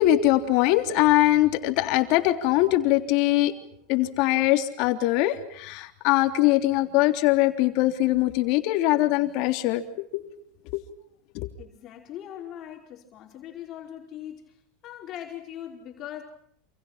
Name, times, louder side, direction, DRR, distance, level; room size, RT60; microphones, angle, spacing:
voice 1, 0.0-3.5 3.9-9.8 10.1-10.2 11.3-11.5, left 15 dB, 60° left, 6 dB, 3.4 m, -22 dB
voice 2, 11.6-14.5 14.8-16.2, left 11 dB, 45° left, 2 dB, 4.9 m, -40 dB
29.0 x 28.5 x 5.9 m, 0.66 s
supercardioid pair, 130°, 0 cm